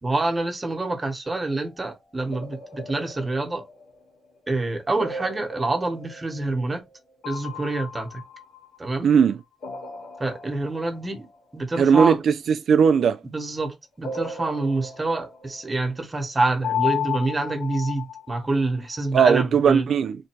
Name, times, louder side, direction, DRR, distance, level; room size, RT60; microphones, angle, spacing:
voice 1, 0.0-3.6 4.5-6.8 7.2-8.2 8.8-9.1 10.2-11.3 11.5-12.2 13.2-19.9, right 2 dB, 20° right, 1.1 m, -27 dB
sound 1, 1.3-1.8 2.3-4.4 5.0-7.0 7.2-9.2 9.6-11.4 14.0-15.9 16.6-18.6, left 6 dB, 85° left, 1.9 m, -34 dB
voice 2, 9.0-9.4 11.8-13.2 19.1-20.2, right 7 dB, 70° right, 0.3 m, -18 dB
3.3 x 2.6 x 4.4 m
wide cardioid pair, 135°, 0 cm